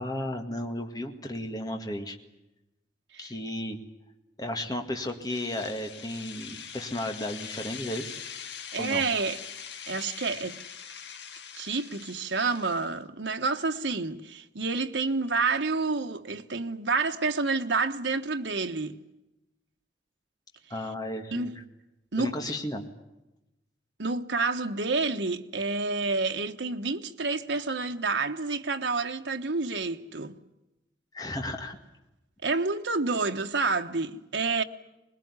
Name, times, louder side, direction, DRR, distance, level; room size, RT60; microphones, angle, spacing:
voice 1, 0.0-2.2 3.2-3.8 4.4-8.2 8.8-9.0 20.7-21.5 22.2-22.9 31.1-31.8, left 1 dB, 20° left, 2.0 m, -34 dB
sound 1, 5.1-12.9, left 7 dB, 75° left, 1.8 m, -42 dB
voice 2, 8.7-9.4 9.9-10.6 11.5-19.0 21.3-21.5 22.1-22.3 24.0-30.4 32.4-34.6, right 4 dB, 85° right, 1.3 m, -29 dB
21.5 x 21.0 x 9.8 m
head